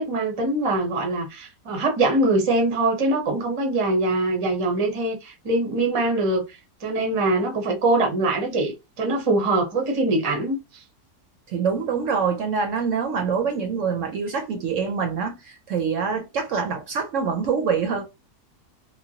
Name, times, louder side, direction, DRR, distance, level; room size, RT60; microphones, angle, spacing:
voice 1, 0.0-6.4 6.8-10.6, right 2 dB, 30° right, 0.6 m, -23 dB
voice 2, 11.5-18.0, right 6 dB, 65° right, 0.9 m, -25 dB
3.1 x 2.2 x 2.7 m
omnidirectional pair, 1.6 m